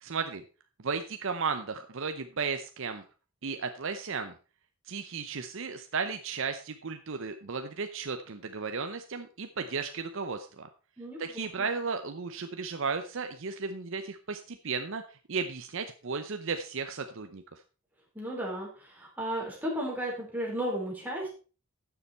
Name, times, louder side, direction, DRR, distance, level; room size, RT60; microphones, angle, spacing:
voice 1, 0.0-0.4 0.8-3.0 3.4-4.3 4.9-10.7 11.2-17.4, right 5 dB, 60° right, 7 dB, 0.7 m, -34 dB
voice 2, 11.0-11.7 18.1-21.3, right 1 dB, 10° right, -3 dB, 4.1 m, -34 dB
12.5 x 7.1 x 4.3 m, 0.36 s
head